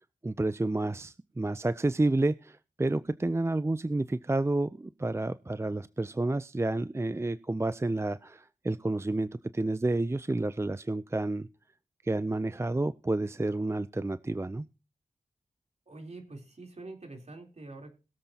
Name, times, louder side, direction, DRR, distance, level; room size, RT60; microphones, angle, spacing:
voice 1, 0.2-11.5 12.0-14.6, right 2 dB, 20° right, 15 dB, 0.5 m, -30 dB
voice 2, 15.9-17.9, right 2 dB, 55° right, 3 dB, 3.6 m, -45 dB
21.5 x 7.6 x 2.9 m, 0.31 s
cardioid pair, 45°, 13 cm